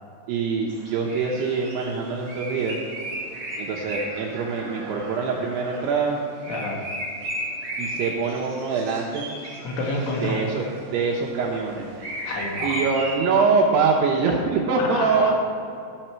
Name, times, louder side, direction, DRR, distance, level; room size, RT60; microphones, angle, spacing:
voice 1, 0.3-2.8 3.6-6.2 7.8-9.3 10.2-11.9 12.6-15.3, right 4 dB, 80° right, -2 dB, 2.4 m, -24 dB
sound 1, 0.7-13.2, right 1 dB, 40° right, 3.7 m, -35 dB
voice 2, 6.5-6.8 9.7-10.4 12.2-12.8 14.8-15.3, left 2 dB, 85° left, -1 dB, 4.2 m, -28 dB
15.0 x 7.0 x 4.4 m, 2.6 s
omnidirectional pair, 5.7 m